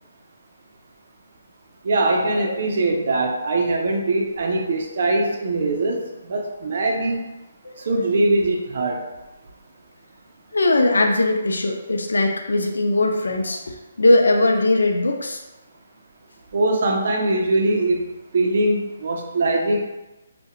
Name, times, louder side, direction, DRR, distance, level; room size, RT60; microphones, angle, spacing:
voice 1, 1.8-7.3 7.9-9.1 16.5-19.9, right 2 dB, 55° right, 2 dB, 0.4 m, -22 dB
voice 2, 10.5-15.4, left 2 dB, 85° left, 4 dB, 0.3 m, -20 dB
2.3 x 2.1 x 2.8 m, 1.0 s
hypercardioid pair, 150°, 0 cm